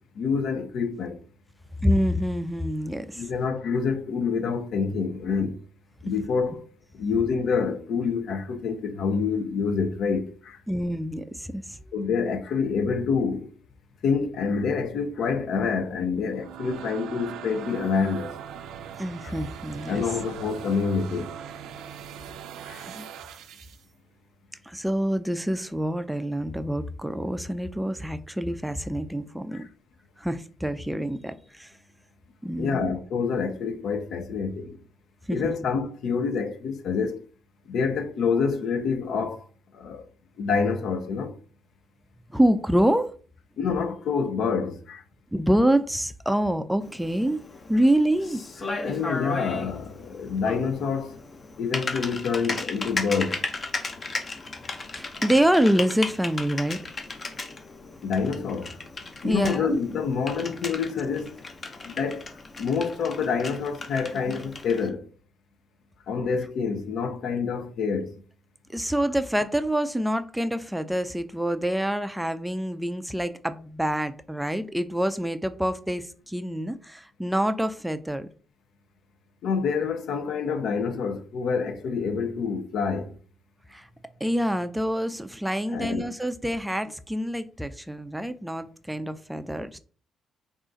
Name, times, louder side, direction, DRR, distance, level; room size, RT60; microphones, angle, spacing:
voice 1, 0.2-1.2 3.2-5.5 6.0-6.7 6.9-10.6 11.9-13.5 14.0-18.3 19.2-19.3 19.9-21.3 22.7-22.9 29.5-29.7 32.6-34.8 35.3-37.3 37.7-39.5 39.7-40.1 40.4-41.3 43.6-45.0 48.8-51.2 51.6-53.5 58.0-58.8 59.2-61.4 61.8-65.1 66.1-68.2 79.4-83.1 85.7-86.1, left 5 dB, 70° left, 0.5 m, -27 dB
voice 2, 1.8-3.3 10.7-11.8 19.0-20.0 22.9-23.1 24.6-29.7 30.2-31.7 32.4-32.9 35.3-35.5 42.3-43.1 45.3-47.4 47.7-48.4 54.9-56.8 59.2-59.8 68.7-78.3 83.7-83.9 84.2-89.8, equal, 5° right, 0.3 m, -26 dB
sound 1, 16.1-23.9, right 9 dB, 85° right, 0.4 m, -40 dB
Typing, 46.8-64.9, left 3 dB, 35° left, 0.7 m, -36 dB
3.7 x 2.4 x 3.8 m
cardioid pair, 90°, 0 cm